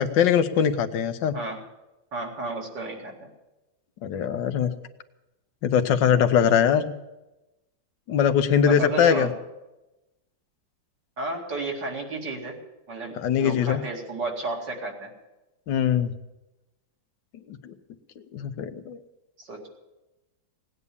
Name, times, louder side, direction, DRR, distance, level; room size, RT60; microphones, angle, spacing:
voice 1, 0.0-1.3 4.0-4.7 5.6-6.9 8.1-9.3 13.2-13.8 15.7-16.1 17.5-17.7 18.3-19.0, left 8 dB, 75° left, 10 dB, 1.6 m, -22 dB
voice 2, 2.1-3.3 8.6-9.3 11.2-12.6 12.9-15.1 19.4-19.7, right 2 dB, 65° right, 0 dB, 3.1 m, -32 dB
18.0 x 9.7 x 7.0 m, 1.0 s
omnidirectional pair, 2.0 m